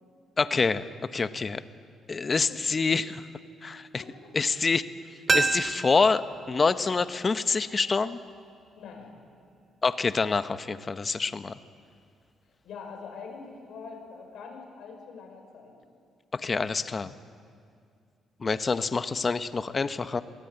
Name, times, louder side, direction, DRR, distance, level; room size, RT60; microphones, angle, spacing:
voice 1, 0.4-0.8 1.1-1.6 2.1-3.2 3.6-4.0 4.3-4.8 5.3-8.2 9.8-11.5 16.3-17.1 18.4-20.2, left 4 dB, 35° left, 12 dB, 0.9 m, -26 dB
voice 2, 4.0-4.5 8.7-9.1 12.6-15.7, left 5 dB, 70° left, 2 dB, 5.4 m, -44 dB
sound 1, 5.3-8.1 8.4-8.5, right 4 dB, 35° right, 1.1 m, -30 dB
23.0 x 16.0 x 9.0 m, 2.3 s
cardioid pair, 90°, 0 cm